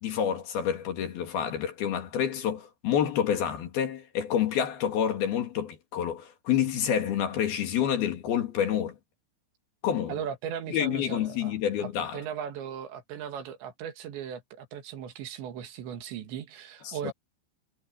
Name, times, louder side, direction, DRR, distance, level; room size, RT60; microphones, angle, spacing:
voice 1, 0.0-9.0 9.8-10.2 10.7-12.2 16.9-17.1, left 9 dB, 60° left, 3.7 m, -28 dB
voice 2, 10.1-11.5 11.8-17.1, right 8 dB, 75° right, 4.1 m, -37 dB
omnidirectional pair, 5.3 m